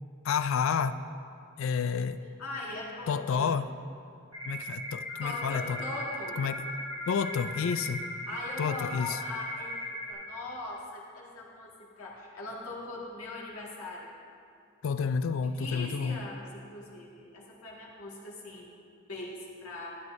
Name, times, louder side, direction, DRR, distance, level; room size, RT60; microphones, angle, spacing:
voice 1, 0.2-1.0 1.6-2.2 3.1-3.7 4.4-5.8 6.4-6.7 7.1-8.0 8.6-9.2 14.8-16.2, left 6 dB, 60° left, 12 dB, 0.3 m, -30 dB
voice 2, 2.2-3.6 5.2-6.4 7.3-7.7 8.3-14.1 15.4-20.0, left 2 dB, 85° left, -4 dB, 1.8 m, -41 dB
sound 1, 4.3-10.1, equal, 70° right, 2.5 m, -38 dB
12.5 x 9.7 x 2.6 m, 2.4 s
head